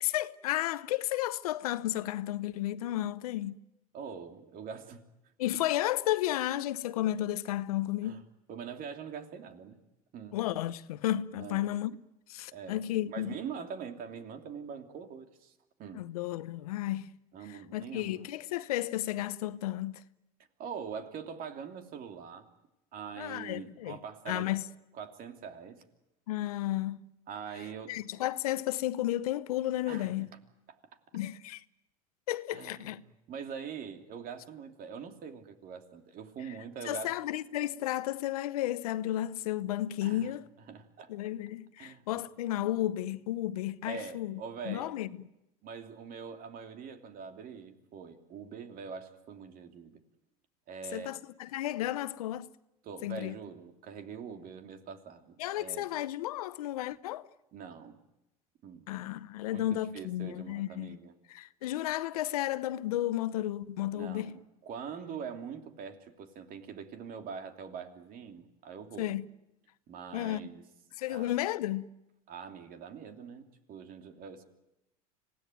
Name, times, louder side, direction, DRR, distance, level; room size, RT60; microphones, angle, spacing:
voice 1, 0.0-3.6 5.4-8.2 10.3-12.0 12.3-13.3 15.9-17.1 17.5-20.0 23.2-24.0 24.3-24.6 26.3-27.0 27.9-30.3 31.1-31.6 32.3-33.0 36.8-40.5 41.1-45.1 50.9-52.5 53.0-53.3 55.4-57.3 58.9-61.0 61.3-64.4 69.0-69.3 70.1-70.5 71.0-71.9, left 14 dB, 85° left, 0.9 m, -33 dB
voice 2, 3.9-5.1 8.0-8.2 8.5-9.8 10.1-10.4 11.4-11.7 12.5-16.1 17.3-18.2 20.6-22.5 22.9-24.5 25.0-25.8 27.3-27.9 29.9-30.3 32.5-32.9 33.3-37.1 40.0-40.3 40.7-41.1 41.8-42.2 43.8-44.9 45.6-50.0 50.7-51.2 52.8-55.9 57.5-58.0 58.6-58.9 59.4-61.1 63.9-69.1 69.9-70.6 71.1-71.3 72.3-74.4, right 6 dB, 50° right, 3.0 m, -43 dB
26.0 x 17.5 x 9.3 m
hypercardioid pair, 90°, 19 cm